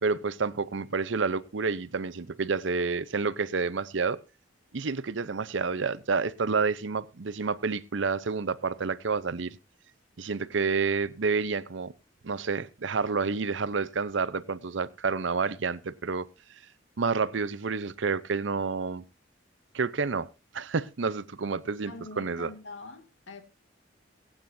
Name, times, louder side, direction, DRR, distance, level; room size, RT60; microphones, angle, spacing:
voice 1, 0.0-4.2 4.7-9.6 10.2-11.9 12.2-16.3 17.0-19.0 19.7-22.5, right 4 dB, 70° right, 0.7 m, -29 dB
voice 2, 21.9-23.4, left 3 dB, 80° left, 2.4 m, -44 dB
23.5 x 8.9 x 2.7 m
head